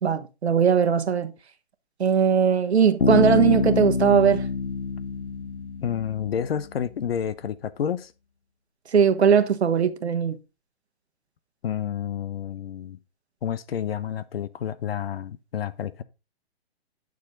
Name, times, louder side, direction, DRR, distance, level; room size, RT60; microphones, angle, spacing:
voice 1, 0.0-1.3 2.0-4.4 8.9-10.4, right 7 dB, 75° right, 1.4 m, -20 dB
Bass guitar, 3.0-6.7, left 4 dB, 85° left, 1.4 m, -26 dB
voice 2, 5.8-8.1 11.6-13.0 13.4-16.0, left 9 dB, 65° left, 1.0 m, -29 dB
9.5 x 6.5 x 3.8 m
hypercardioid pair, 130°, 33 cm